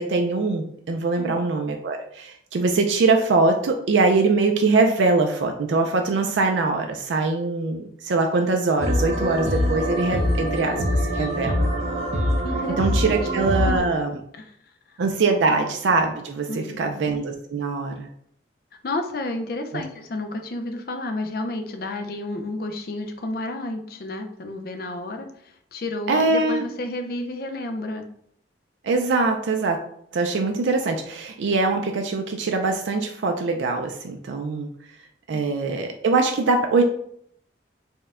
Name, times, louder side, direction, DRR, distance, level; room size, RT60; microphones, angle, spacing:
voice 1, 0.0-11.7 12.7-14.2 15.0-18.1 19.7-19.8 26.1-26.6 28.8-29.8 30.1-34.7 35.3-36.8, right 3 dB, 85° right, 4 dB, 0.4 m, -22 dB
sound 1, 8.8-13.8, equal, 40° right, 0.8 m, -24 dB
voice 2, 12.4-13.2 13.6-13.9 14.3-14.4 14.9-15.0 15.5-15.6 16.5-17.0 18.8-25.3 25.7-28.1 35.3-35.4, left 2 dB, 55° left, 5 dB, 0.5 m, -31 dB
4.3 x 2.2 x 3.6 m, 0.67 s
head